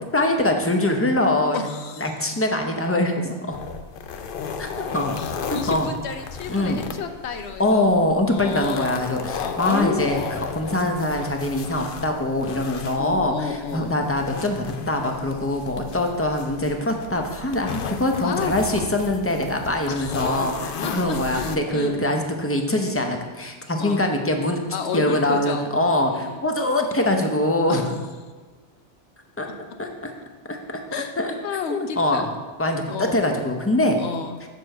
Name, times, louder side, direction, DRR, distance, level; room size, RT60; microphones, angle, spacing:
voice 1, 0.1-1.7 2.0-3.6 4.6-5.1 5.5-5.9 6.5-6.8 7.6-24.6 24.9-27.8 29.4-29.5 29.8-30.1 30.5-30.8 31.2-31.3 31.7-32.3 32.6-34.0, left 1 dB, 15° left, 3 dB, 0.6 m, -23 dB
voice 2, 1.5-2.1 5.2-7.9 8.3-9.0 9.4-10.3 13.0-13.9 18.2-18.6 19.9-20.4 20.8-20.9 21.3-22.1 23.8-24.0 24.7-25.7 26.1-26.4 27.7-28.0 30.9-31.1 31.4-32.3 32.9-33.2 34.0-34.4, left 6 dB, 85° left, 7 dB, 1.0 m, -31 dB
sound 1, 3.5-21.6, left 6 dB, 60° left, 0.7 m, -34 dB
6.7 x 4.6 x 6.5 m, 1.4 s
omnidirectional pair, 1.1 m